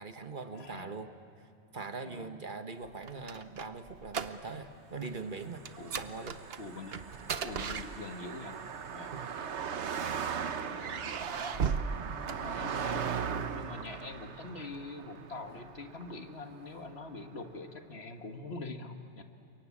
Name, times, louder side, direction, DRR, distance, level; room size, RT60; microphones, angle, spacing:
voice 1, 0.0-5.6 5.9-6.4 9.1-9.3 12.0-12.2, right 4 dB, 50° right, 8 dB, 1.3 m, -42 dB
voice 2, 0.5-0.9 2.0-2.3 5.8-6.0 6.6-7.0 7.4-8.6 8.9-9.1 10.6-11.6 12.2-19.2, left 3 dB, 65° left, 5 dB, 1.9 m, -44 dB
sound 1, 2.9-4.8 5.0-5.3 5.7-8.4 9.3-10.2 10.7-13.0, right 6 dB, 65° right, 1.1 m, -37 dB
sound 2, 4.4-11.0, left 1 dB, 15° left, 3.9 m, -65 dB
Car passing by, 5.3-16.9, right 7 dB, 85° right, 1.2 m, -39 dB
29.5 x 24.0 x 8.5 m, 2.6 s
omnidirectional pair, 1.1 m